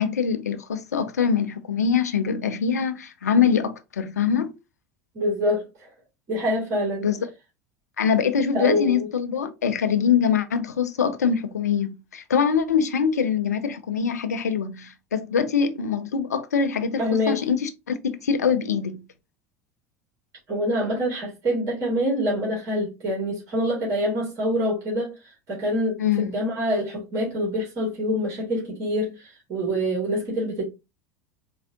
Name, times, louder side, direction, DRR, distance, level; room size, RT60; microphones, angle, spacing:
voice 1, 0.0-4.5 7.0-7.2 8.0-19.0 26.0-26.3, left 7 dB, 75° left, 0.5 m, -23 dB
voice 2, 5.1-5.9 6.3-7.1 8.5-9.1 17.0-17.4 20.5-30.7, equal, 40° right, 2.0 m, -26 dB
4.3 x 2.4 x 2.7 m
figure-of-eight pair, 75°, 9 cm